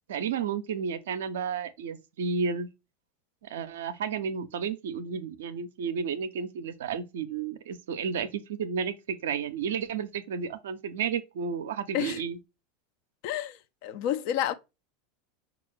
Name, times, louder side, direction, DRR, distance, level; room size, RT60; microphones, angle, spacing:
voice 1, 0.1-2.7 3.4-12.4, right 6 dB, 70° right, 0.5 m, -32 dB
voice 2, 13.2-14.5, left 11 dB, 55° left, 0.5 m, -30 dB
5.4 x 2.4 x 3.1 m
figure-of-eight pair, 85°, 0 cm